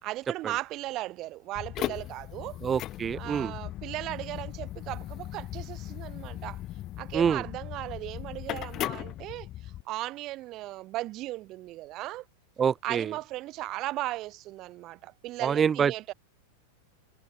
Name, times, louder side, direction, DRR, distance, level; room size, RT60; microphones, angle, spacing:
voice 1, 0.0-2.6 3.1-6.6 7.0-12.3 12.8-16.1, right 17 dB, 35° right, 2.9 m, -37 dB
sound 1, 1.5-9.8, left 14 dB, 35° left, 1.9 m, -38 dB
voice 2, 2.6-3.5 7.1-7.4 12.6-13.1 15.4-16.1, right 7 dB, 20° right, 0.6 m, -26 dB
figure-of-eight pair, 90°, 0 cm